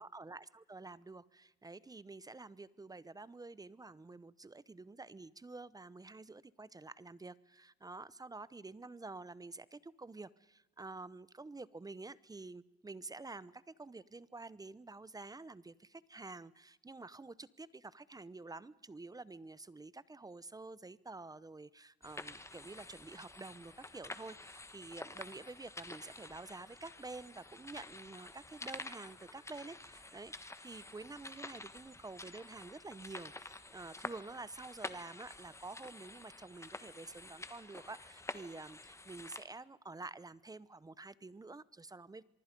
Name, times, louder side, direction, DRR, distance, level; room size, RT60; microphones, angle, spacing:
voice 1, 0.0-42.2, right 3 dB, 20° right, 19 dB, 0.8 m, -49 dB
sound 1, 22.0-39.4, left 2 dB, 15° left, 1.5 m, -49 dB
24.5 x 23.5 x 5.3 m, 0.95 s
cardioid pair, 90°, 20 cm